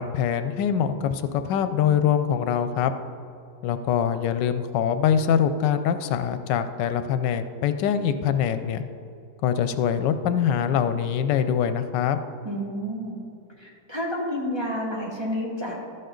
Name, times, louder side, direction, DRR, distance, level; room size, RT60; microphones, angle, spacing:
voice 1, 0.0-2.9 3.6-8.8 9.4-12.2, left 8 dB, 85° left, 10 dB, 1.2 m, -24 dB
voice 2, 12.4-13.2 13.6-15.8, equal, 15° right, -4 dB, 1.4 m, -30 dB
12.5 x 7.8 x 3.8 m, 2.5 s
omnidirectional pair, 1.9 m